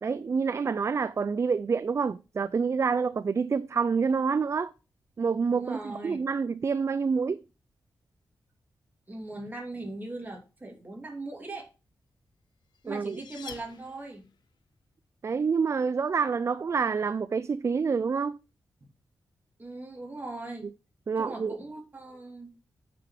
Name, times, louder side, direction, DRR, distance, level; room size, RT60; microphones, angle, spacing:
voice 1, 0.0-4.7 5.2-7.4 12.9-13.2 15.2-18.4 21.1-21.5, right 5 dB, 40° right, 0.4 m, -27 dB
voice 2, 5.5-6.2 9.1-11.6 12.8-14.3 19.6-20.7 21.2-22.5, right 2 dB, 25° right, 2.9 m, -39 dB
sound 1, 12.4-14.5, left 6 dB, 85° left, 1.1 m, -48 dB
9.2 x 5.9 x 4.9 m
wide cardioid pair, 95°, 7 cm